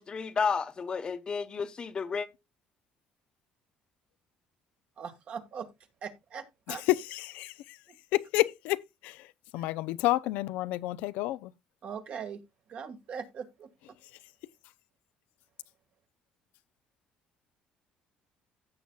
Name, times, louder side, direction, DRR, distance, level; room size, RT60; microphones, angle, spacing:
voice 1, 0.0-2.3, left 5 dB, 35° left, 1.0 m, -32 dB
voice 2, 5.0-5.7 6.0-6.8 11.8-12.4 12.7-13.7, right 7 dB, 55° right, 1.6 m, -40 dB
voice 3, 6.7-7.8 8.1-11.5, left 18 dB, 85° left, 0.4 m, -30 dB
16.0 x 6.9 x 2.3 m
cardioid pair, 105°, 3 cm